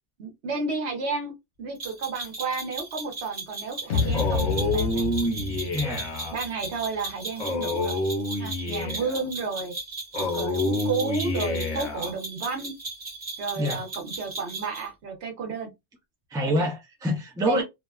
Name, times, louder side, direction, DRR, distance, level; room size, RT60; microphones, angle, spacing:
voice 1, 0.2-1.3 1.6-5.1 6.3-8.0 8.4-9.7 10.1-12.7 13.4-15.7 16.6-16.7 17.4-17.6, right 4 dB, 70° right, 1.0 m, -32 dB
sound 1, 1.8-14.9, right 2 dB, 50° right, 1.2 m, -37 dB
sound 2, 3.9-7.1, left 5 dB, 80° left, 0.9 m, -29 dB
Male speech man speaking, 4.1-6.3 7.4-9.2 10.1-12.1, left 2 dB, 45° left, 0.8 m, -28 dB
voice 2, 5.7-6.1 13.6-13.8 16.3-17.6, equal, 5° right, 0.5 m, -26 dB
2.6 x 2.1 x 2.3 m
omnidirectional pair, 1.2 m